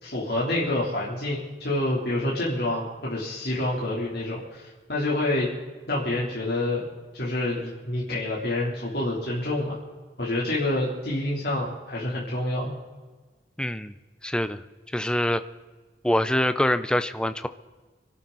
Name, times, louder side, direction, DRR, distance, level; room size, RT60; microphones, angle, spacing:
voice 1, 0.0-5.5 5.9-6.9 7.1-9.8 10.2-12.8, left 1 dB, 65° left, -6 dB, 3.4 m, -27 dB
voice 2, 13.6-13.9 14.2-14.6 14.9-15.4 16.0-17.5, left 1 dB, 5° left, 11 dB, 0.6 m, -24 dB
26.0 x 12.0 x 4.1 m, 1.3 s
head